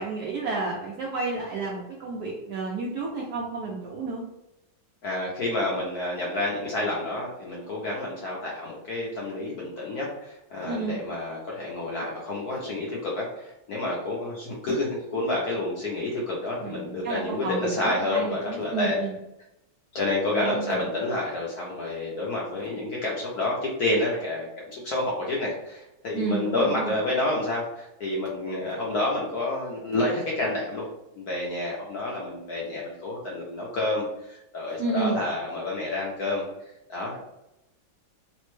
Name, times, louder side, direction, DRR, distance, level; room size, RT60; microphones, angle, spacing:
voice 1, 0.0-4.2 10.7-11.0 16.6-19.2 20.3-20.8 26.1-26.9 34.8-35.2, right 4 dB, 75° right, -3 dB, 0.9 m, -31 dB
voice 2, 5.0-19.0 19.9-30.9 31.1-36.4 36.9-37.2, left 2 dB, 70° left, -4 dB, 0.9 m, -29 dB
3.3 x 2.1 x 3.1 m, 0.88 s
omnidirectional pair, 2.2 m